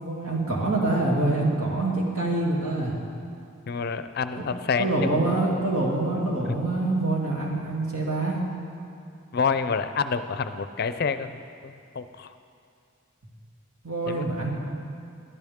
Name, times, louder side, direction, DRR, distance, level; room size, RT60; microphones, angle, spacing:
voice 1, 0.0-2.9 4.4-4.5 4.8-8.4 13.8-14.5, right 2 dB, 85° right, -3 dB, 2.7 m, -25 dB
voice 2, 3.7-5.2 9.3-12.3 14.1-14.3, left 5 dB, 45° left, 11 dB, 0.5 m, -28 dB
18.5 x 11.5 x 3.6 m, 2.4 s
head